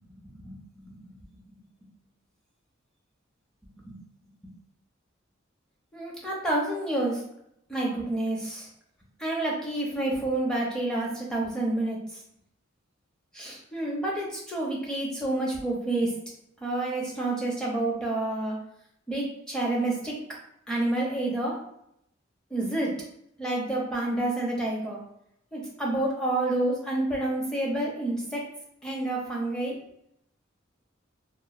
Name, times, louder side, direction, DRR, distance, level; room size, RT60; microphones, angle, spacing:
voice 1, 0.2-1.1 3.8-4.0 5.9-7.3 7.7-8.7 9.2-12.2 13.3-16.2 16.6-18.6 19.1-20.2 20.7-21.6 22.5-23.0 23.4-25.0 25.5-28.4 28.8-29.8, right 2 dB, 5° left, -3 dB, 0.6 m, -29 dB
3.0 x 2.1 x 2.4 m, 0.75 s
head